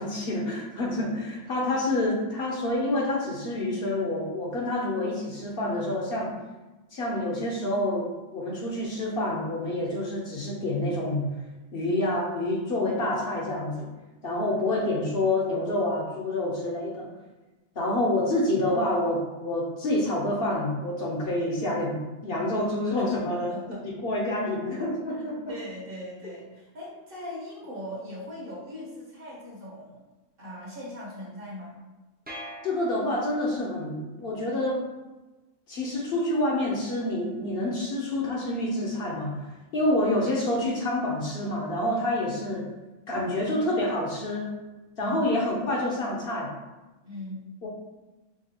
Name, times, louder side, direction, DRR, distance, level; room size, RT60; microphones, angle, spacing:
voice 1, 0.0-6.4 6.9-11.3 11.7-13.9 14.2-17.1 17.8-23.5 24.0-25.5 32.6-34.8 35.7-39.4 39.7-42.7 43.1-44.5 45.0-46.5 47.6-47.7, left 1 dB, 55° left, -2 dB, 0.9 m, -27 dB
voice 2, 23.0-23.8 25.5-30.0 30.4-31.8 41.8-42.0 44.9-45.2 47.0-47.5, left 1 dB, 50° right, -5 dB, 1.1 m, -39 dB
sound 1, 32.3-33.6, equal, 10° right, 0.4 m, -43 dB
5.1 x 2.4 x 2.8 m, 1.1 s
omnidirectional pair, 1.3 m